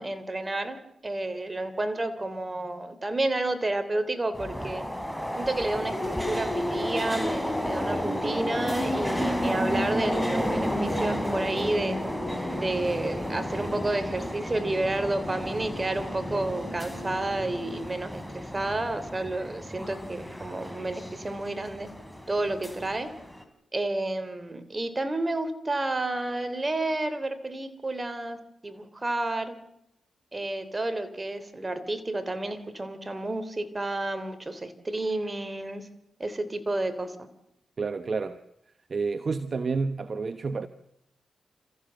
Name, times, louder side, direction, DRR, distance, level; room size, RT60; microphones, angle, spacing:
voice 1, 0.0-4.8 5.4-12.0 12.5-21.9 22.3-23.1 23.7-29.6 30.3-35.9 36.2-37.3, right 2 dB, 30° right, 3.2 m, -30 dB
sound 1, 4.3-23.4, equal, ahead, 3.5 m, -32 dB
sound 2, 9.3-17.8, equal, 80° right, 5.3 m, -45 dB
voice 2, 37.8-38.4 38.9-40.7, right 4 dB, 50° right, 1.0 m, -29 dB
28.0 x 15.0 x 7.7 m
cardioid pair, 55°, 0 cm